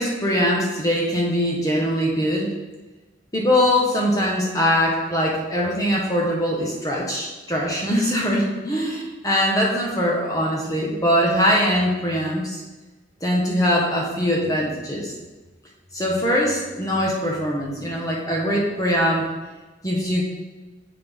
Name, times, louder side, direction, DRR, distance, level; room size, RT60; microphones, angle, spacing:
voice 1, 0.0-2.5 3.3-12.6 13.2-15.1 15.9-19.3 19.8-20.2, equal, 20° left, -3 dB, 1.1 m, -22 dB
8.9 x 3.9 x 3.5 m, 1.2 s
head